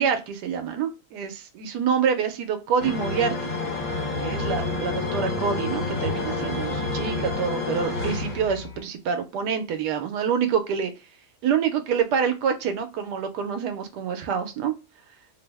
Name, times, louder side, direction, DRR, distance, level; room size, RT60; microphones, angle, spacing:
voice 1, 0.0-3.5 4.2-10.9 11.4-14.7, right 7 dB, 85° right, 7 dB, 1.2 m, -26 dB
sound 1, 2.8-8.8, left 3 dB, 55° left, 1.4 m, -29 dB
3.4 x 2.0 x 3.3 m, 0.28 s
omnidirectional pair, 1.7 m